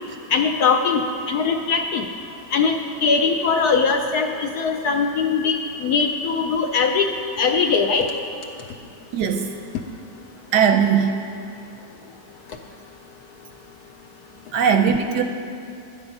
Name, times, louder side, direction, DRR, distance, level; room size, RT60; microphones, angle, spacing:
voice 1, 0.3-1.0 1.3-2.1 2.5-5.6 5.8-7.1 7.4-8.1, left 5 dB, 70° left, 4 dB, 0.9 m, -20 dB
voice 2, 9.1-9.5 10.5-11.2 14.5-15.2, right 7 dB, 70° right, 6 dB, 1.0 m, -19 dB
12.5 x 9.7 x 5.3 m, 2.5 s
omnidirectional pair, 2.1 m